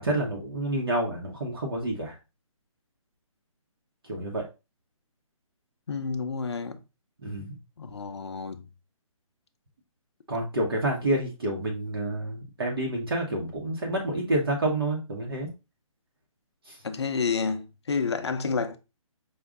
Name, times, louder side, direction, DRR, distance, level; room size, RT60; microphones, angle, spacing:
voice 1, 0.0-2.2 4.1-4.4 7.2-7.6 10.3-15.5 16.7-16.8, right 1 dB, 45° right, 0.8 m, -28 dB
voice 2, 5.9-6.8 7.8-8.6 16.8-18.8, left 5 dB, 50° left, 0.5 m, -29 dB
5.0 x 2.2 x 3.5 m
hypercardioid pair, 180°, 18 cm